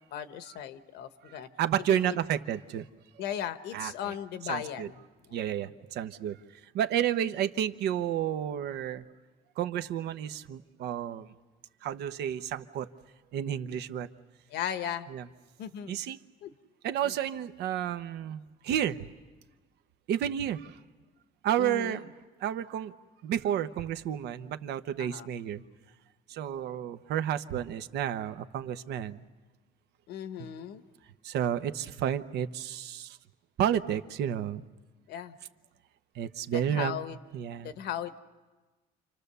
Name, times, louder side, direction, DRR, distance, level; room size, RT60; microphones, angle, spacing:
voice 1, 0.1-1.5 1.9-2.2 3.2-5.0 5.3-5.4 14.5-15.1 15.6-16.0 16.4-16.5 17.0-17.1 21.6-22.1 25.0-25.3 30.1-30.8 35.1-35.4 36.5-37.2 37.6-38.2, left 10 dB, 80° left, 11 dB, 1.2 m, -37 dB
voice 2, 1.2-2.9 3.7-4.1 4.5-4.9 5.3-6.4 6.7-9.0 9.6-11.3 11.8-12.9 13.3-14.1 15.1-15.3 15.9-16.2 16.8-19.1 20.1-20.8 21.4-22.1 22.4-22.9 23.2-25.6 26.3-29.2 31.2-33.2 33.6-34.6 36.1-37.0 37.3-37.7, right 10 dB, 75° right, 10 dB, 1.0 m, -31 dB
29.0 x 25.5 x 6.8 m, 1.3 s
cardioid pair, 110°, 17 cm